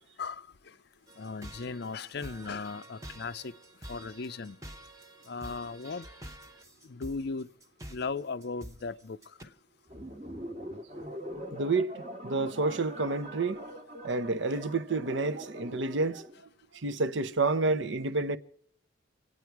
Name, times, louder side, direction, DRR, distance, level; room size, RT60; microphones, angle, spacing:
sound 1, 1.1-9.4, right 1 dB, 15° right, 0.9 m, -48 dB
voice 1, 1.2-3.5 3.9-4.6 5.3-6.1 6.8-7.5 7.9-9.5, left 4 dB, 55° left, 0.5 m, -37 dB
sound 2, 9.9-16.4, equal, 30° right, 1.3 m, -42 dB
voice 2, 11.5-13.6 14.0-16.2 16.7-18.4, right 3 dB, 65° right, 0.8 m, -29 dB
27.5 x 9.3 x 4.6 m
head